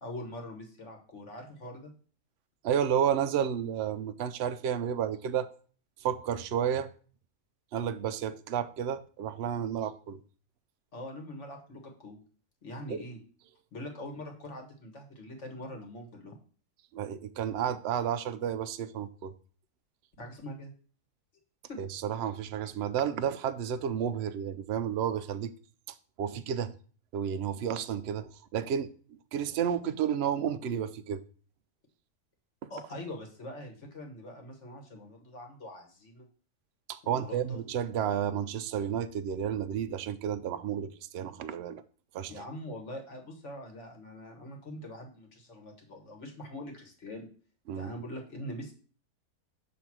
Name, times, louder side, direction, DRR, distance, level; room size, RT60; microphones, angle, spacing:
voice 1, 0.0-1.9 10.9-12.2 12.6-13.2 13.7-16.3 20.2-20.7 21.7-21.8 26.3-26.4 32.7-36.3 37.0-37.6 42.3-47.3 47.8-48.7, left 1 dB, 50° left, 1.8 m, -43 dB
voice 2, 2.6-5.5 6.0-6.9 7.7-10.2 12.9-13.0 16.9-19.3 21.8-25.5 26.2-26.7 27.1-31.2 32.6-32.7 36.9-41.8 42.1-42.4 47.7-47.9, right 9 dB, 80° right, 0.5 m, -31 dB
7.2 x 3.4 x 6.0 m
omnidirectional pair, 1.7 m